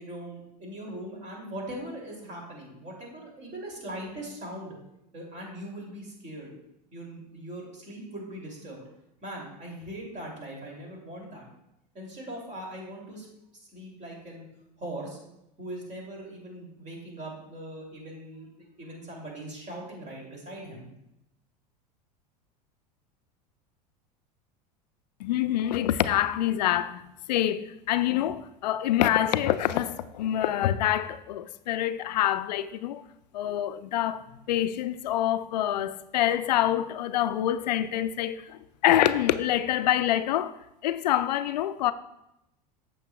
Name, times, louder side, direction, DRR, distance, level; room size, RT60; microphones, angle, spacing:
voice 1, 0.0-4.7 5.1-6.6 6.9-8.8 9.2-11.5 11.9-13.3 13.5-14.4 14.8-15.2 15.6-18.5 18.8-20.9, right 1 dB, 35° right, 2.8 m, -40 dB
voice 2, 25.2-33.0 33.3-41.9, left 12 dB, 80° left, 0.4 m, -26 dB
8.1 x 7.0 x 2.3 m
hypercardioid pair, 90°, 21 cm